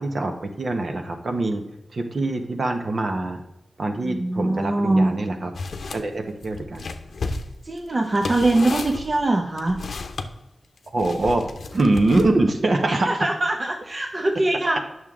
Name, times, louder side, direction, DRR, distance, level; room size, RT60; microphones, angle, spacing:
voice 1, 0.0-1.6 1.9-3.4 3.8-5.5 5.9-6.8 10.9-11.4 11.7-13.1, right 2 dB, 55° right, 5 dB, 1.1 m, -23 dB
voice 2, 4.0-5.1 7.6-9.8 12.8-14.8, right 2 dB, 35° right, 3 dB, 0.7 m, -22 dB
sound 1, 5.5-6.0 6.4-10.3 11.0-12.5, left 3 dB, 75° left, 0.7 m, -33 dB
8.9 x 6.4 x 3.7 m, 0.94 s
wide cardioid pair, 95°, 0 cm